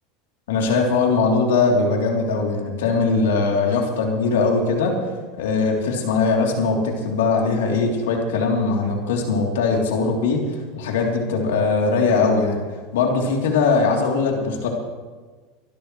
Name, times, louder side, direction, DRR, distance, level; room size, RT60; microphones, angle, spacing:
voice 1, 0.5-4.9 5.3-12.6 12.9-14.7, left 4 dB, 85° left, 0 dB, 3.4 m, -20 dB
25.0 x 12.5 x 3.3 m, 1.4 s
hypercardioid pair, 100°, 0 cm